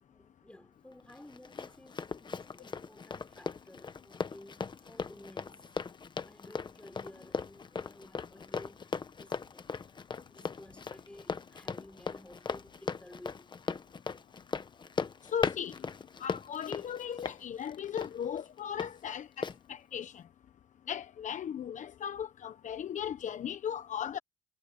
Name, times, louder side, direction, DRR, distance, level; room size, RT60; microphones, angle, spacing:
voice 1, 0.1-5.8 6.2-9.8 10.2-13.5, left 1 dB, 5° left, 4.6 m, -54 dB
Run, 1.1-18.9 19.4-19.6, left 5 dB, 25° left, 1.1 m, -38 dB
voice 2, 15.3-15.7 16.2-20.2 20.9-24.2, left 8 dB, 45° left, 1.1 m, -37 dB
cardioid pair, 110°, 17 cm